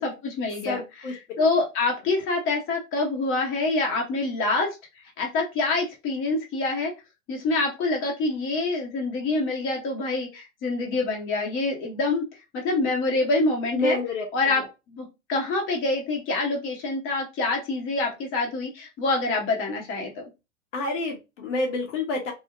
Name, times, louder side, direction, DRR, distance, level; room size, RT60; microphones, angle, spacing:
voice 1, 0.0-0.8 1.1-4.7 5.2-6.9 7.3-12.2 12.5-14.0 14.3-14.6 14.9-20.2, left 3 dB, 30° left, 1 dB, 0.9 m, -26 dB
voice 2, 0.6-1.1 13.7-14.7 20.7-22.3, left 2 dB, 65° left, 2 dB, 0.8 m, -28 dB
2.7 x 2.1 x 2.3 m, 0.26 s
figure-of-eight pair, 90°, 39 cm